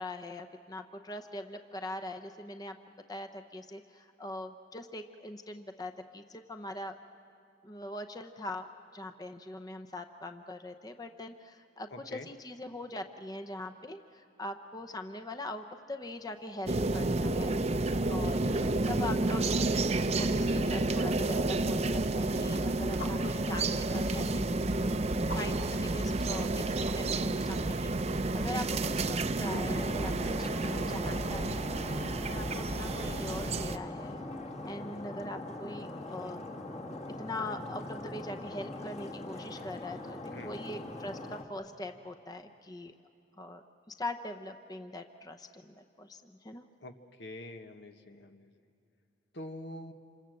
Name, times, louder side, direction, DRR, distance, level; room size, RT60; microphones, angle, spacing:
voice 1, 0.0-2.8 3.1-6.9 7.6-8.7 8.9-17.5 18.1-19.6 20.2-24.6 25.3-34.2 34.6-36.4 37.2-42.9 43.4-46.6, left 1 dB, 20° left, 7 dB, 0.8 m, -42 dB
voice 2, 11.9-12.3 40.3-40.6 46.8-48.5 49.3-49.9, left 1 dB, 70° left, 6 dB, 1.4 m, -45 dB
sound 1, 16.7-33.8, right 2 dB, 35° right, 0.7 m, -30 dB
sound 2, 20.8-27.2, left 2 dB, 85° left, 3.2 m, -53 dB
Stream, 29.6-41.4, left 2 dB, 35° left, 1.7 m, -42 dB
27.5 x 26.0 x 7.7 m, 2.6 s
head